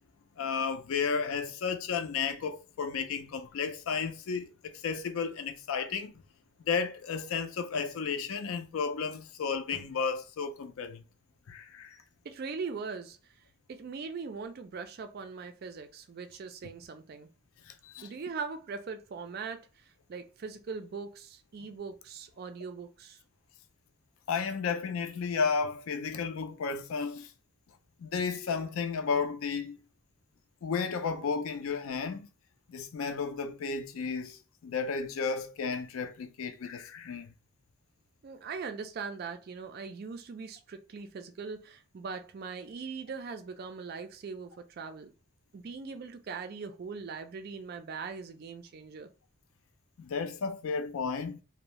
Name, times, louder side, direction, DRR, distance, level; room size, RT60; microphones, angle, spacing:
voice 1, 0.4-6.1 6.7-11.0 11.5-12.0 17.7-18.1 24.3-27.3 28.0-29.8 30.6-32.3 32.7-37.3 50.0-51.4, left 5 dB, 70° left, 0.4 m, -33 dB
voice 2, 12.2-13.2 13.7-17.3 18.0-23.2 38.2-45.1 45.5-49.1, right 5 dB, 45° right, 0.3 m, -40 dB
2.6 x 2.0 x 2.9 m
head